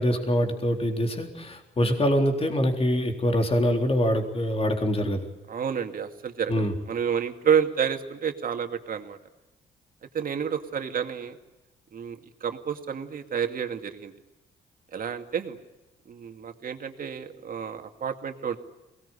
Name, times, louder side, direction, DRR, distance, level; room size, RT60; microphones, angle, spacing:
voice 1, 0.0-5.3 6.5-6.7, equal, 35° left, 4 dB, 3.9 m, -24 dB
voice 2, 5.5-9.2 10.1-11.4 11.9-14.1 14.9-15.6 16.1-18.6, right 7 dB, 55° right, 6 dB, 2.4 m, -29 dB
22.5 x 19.0 x 9.9 m, 1.0 s
supercardioid pair, 55°, 17 cm